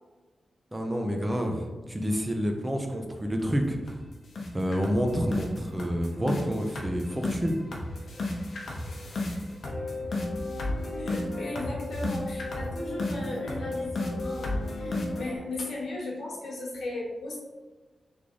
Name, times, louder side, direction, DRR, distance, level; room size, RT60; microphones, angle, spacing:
voice 1, 0.7-3.9 4.5-7.6, equal, 15° right, 3 dB, 0.4 m, -28 dB
sound 1, 2.9-3.0 3.4-3.6 3.9-4.0 4.4-15.4, left 2 dB, 65° left, 0.7 m, -33 dB
voice 2, 11.0-17.4, left 2 dB, 80° left, -3 dB, 1.2 m, -36 dB
3.5 x 3.3 x 3.8 m, 1.2 s
wide cardioid pair, 145°, 0 cm